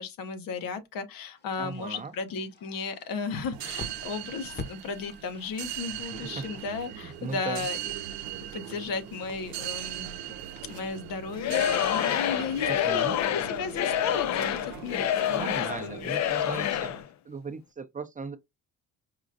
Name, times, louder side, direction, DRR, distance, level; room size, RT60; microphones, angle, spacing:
voice 1, 0.0-7.8 8.5-10.1 10.7-16.6, left 5 dB, 75° left, 1.0 m, -35 dB
sound 1, 1.4-10.9, left 3 dB, 30° left, 0.8 m, -48 dB
voice 2, 1.6-2.1 6.0-6.4 6.9-7.6 12.6-13.2 15.3-16.9 17.3-18.4, right 4 dB, 25° right, 0.5 m, -38 dB
sound 2, 3.5-17.0, right 12 dB, 90° right, 0.6 m, -40 dB
Singing / Crowd, 11.4-17.0, left 11 dB, 55° left, 0.5 m, -28 dB
4.9 x 2.4 x 2.5 m
cardioid pair, 95°, 34 cm